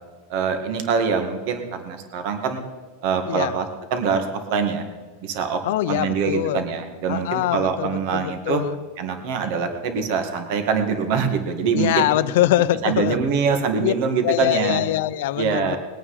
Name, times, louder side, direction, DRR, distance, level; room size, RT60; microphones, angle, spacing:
voice 1, 0.3-2.6 3.0-4.9 5.2-5.6 5.9-8.6 9.0-12.1 12.8-14.8 15.4-15.8, right 6 dB, 55° right, 6 dB, 2.0 m, -24 dB
voice 2, 5.6-6.6 7.1-8.8 11.7-13.2 13.8-13.9 14.2-15.8, left 14 dB, 65° left, 15 dB, 0.7 m, -23 dB
21.0 x 9.0 x 5.0 m, 1.4 s
supercardioid pair, 155°, 0 cm